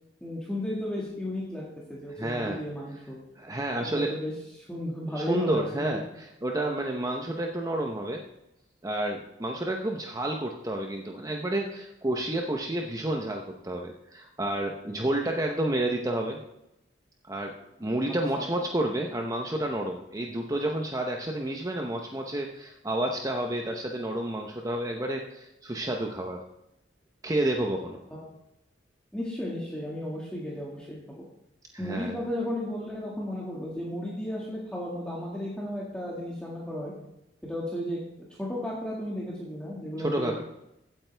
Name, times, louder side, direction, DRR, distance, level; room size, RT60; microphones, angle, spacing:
voice 1, 0.2-1.6 1.9-3.2 3.8-6.0 18.1-18.5 28.1-28.3 29.1-31.3 31.8-36.9 37.4-38.0 38.4-40.3, left 1 dB, 5° left, -5 dB, 1.9 m, -34 dB
voice 2, 2.2-2.6 3.4-4.1 5.2-8.2 8.8-16.4 17.3-17.5 17.8-26.4 27.2-28.0 31.7-32.1 40.0-40.4, right 1 dB, 20° right, 2 dB, 0.9 m, -30 dB
15.5 x 9.0 x 3.4 m, 0.87 s
head